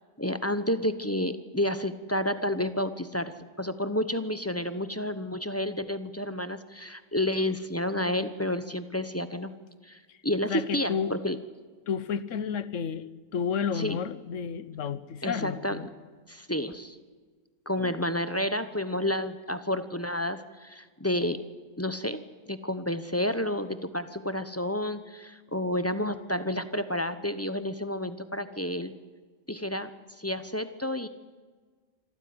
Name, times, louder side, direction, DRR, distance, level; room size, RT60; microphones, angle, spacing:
voice 1, 0.2-3.3 3.6-9.5 9.8-11.4 13.7-14.0 15.2-15.9 16.3-17.0 17.7-21.4 21.8-22.2 22.5-28.9 29.5-29.9 30.2-31.1, left 1 dB, 10° left, 11 dB, 0.8 m, -30 dB
voice 2, 10.5-11.1 11.9-15.9 17.8-18.0, left 6 dB, 60° left, 15 dB, 1.2 m, -31 dB
26.0 x 14.5 x 9.6 m, 1.5 s
omnidirectional pair, 1.6 m